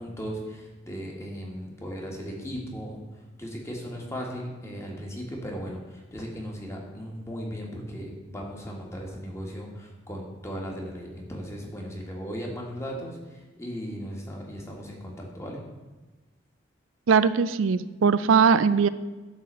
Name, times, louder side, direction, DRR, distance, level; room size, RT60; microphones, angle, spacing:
voice 1, 0.0-3.0 3.4-15.6, equal, 15° left, -1 dB, 1.7 m, -37 dB
voice 2, 17.1-18.9, right 6 dB, 85° right, 14 dB, 0.4 m, -20 dB
11.0 x 4.1 x 7.5 m, 1.2 s
head